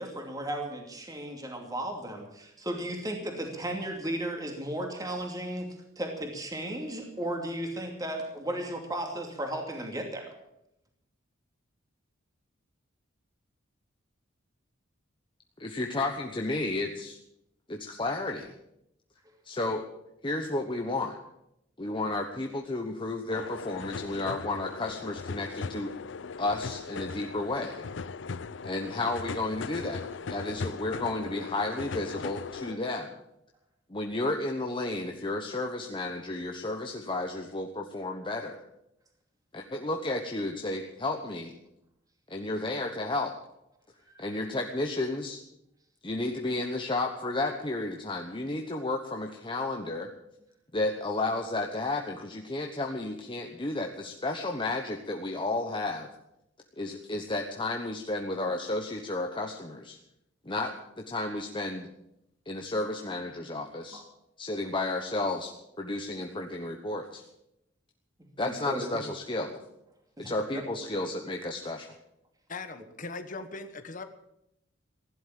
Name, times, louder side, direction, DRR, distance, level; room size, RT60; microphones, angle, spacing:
voice 1, 0.0-10.3 32.7-32.8 63.9-64.0 68.4-69.0 70.2-70.6, right 1 dB, 20° right, 2 dB, 2.6 m, -35 dB
voice 2, 15.6-17.2 17.7-18.5 19.4-19.8 20.2-21.2 21.8-25.9 26.4-27.9 28.6-33.1 33.9-38.6 39.5-41.6 42.3-43.3 44.2-45.4 46.0-50.1 50.7-56.1 56.8-60.0 60.4-61.9 62.5-64.0 64.4-67.2 68.4-69.6 70.2-71.9, left 2 dB, 25° left, 2 dB, 1.1 m, -32 dB
sound 1, 23.3-32.7, left 4 dB, 60° left, 0.5 m, -38 dB
voice 3, 72.5-74.0, left 3 dB, 40° left, 8 dB, 1.3 m, -39 dB
16.0 x 11.5 x 7.6 m, 0.81 s
head